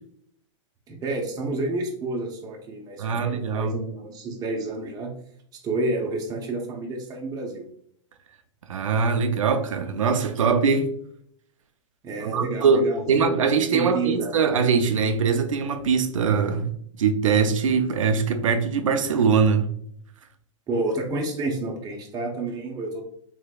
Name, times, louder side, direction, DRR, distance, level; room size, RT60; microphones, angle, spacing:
voice 1, 0.9-5.1 5.6-7.7 12.0-13.4 13.7-14.3 20.7-23.0, right 2 dB, 25° right, 0.8 m, -29 dB
voice 2, 3.0-3.8 8.7-10.9 12.2-19.7, right 5 dB, 85° right, 0.5 m, -22 dB
3.5 x 3.3 x 2.3 m
hypercardioid pair, 120°, 16 cm